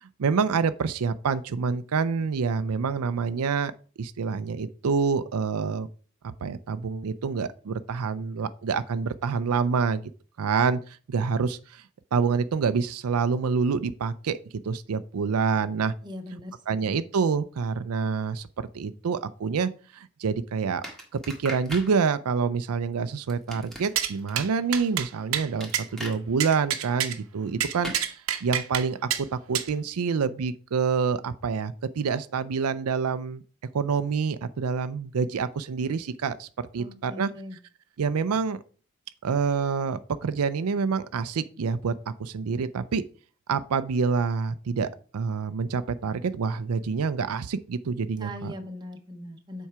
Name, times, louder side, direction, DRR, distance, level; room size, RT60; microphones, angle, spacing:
voice 1, 0.0-3.7 4.0-5.9 6.4-10.1 10.4-11.8 12.1-14.4 14.6-15.9 16.3-16.4 16.7-18.5 18.7-20.8 21.1-33.4 33.7-37.3 38.0-38.6 39.2-43.0 43.5-48.5, right 5 dB, 90° right, 0.5 m, -27 dB
voice 2, 16.0-16.9 36.8-37.6 48.2-49.7, left 1 dB, 20° right, 1.0 m, -40 dB
sound 1, 20.8-21.9 23.3-24.3 25.6-26.2 27.8-28.0, right 1 dB, ahead, 1.6 m, -38 dB
sound 2, 24.0-24.1 24.4-24.5 24.7-25.1 25.3-25.5 25.7-25.8 26.4-27.1 27.6-28.8 29.1-29.2 29.5-29.7, right 10 dB, 70° right, 0.8 m, -27 dB
7.2 x 4.6 x 4.8 m
head